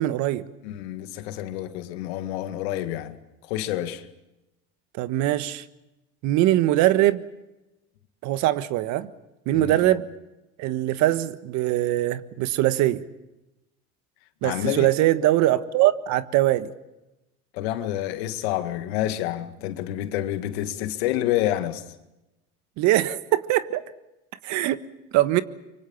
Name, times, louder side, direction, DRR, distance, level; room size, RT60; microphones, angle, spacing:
voice 1, 0.0-0.5 4.9-5.6 6.2-7.2 8.2-9.1 9.4-10.0 10.6-13.0 14.4-16.7 22.8-23.8 24.4-24.8 25.1-25.4, right 15 dB, 65° right, 1.5 m, -22 dB
voice 2, 0.6-3.2 3.4-4.1 9.5-10.0 14.4-14.9 17.5-21.8, left 13 dB, 85° left, 2.0 m, -28 dB
25.0 x 24.5 x 7.2 m
supercardioid pair, 100°, 31 cm